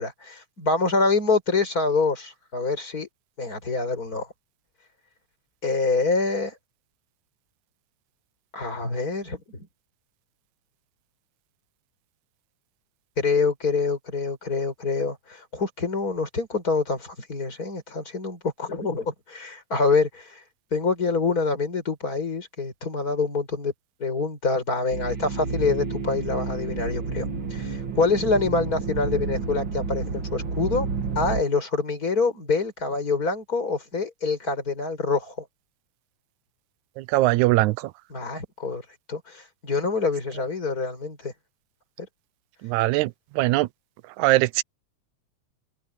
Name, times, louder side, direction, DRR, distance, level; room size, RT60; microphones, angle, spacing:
voice 1, 0.0-3.1 3.4-4.3 5.6-6.5 8.5-9.7 13.2-20.4 20.7-23.7 24.0-30.9 31.1-35.4 38.1-38.8 39.1-41.3, left 4 dB, 25° left, 6.3 m, -26 dB
sound 1, 24.9-31.4, right 4 dB, 45° right, 2.5 m, -30 dB
voice 2, 37.1-37.8 42.6-43.1 43.4-43.7 44.2-44.6, right 18 dB, 80° right, 2.0 m, -20 dB
omnidirectional pair, 3.4 m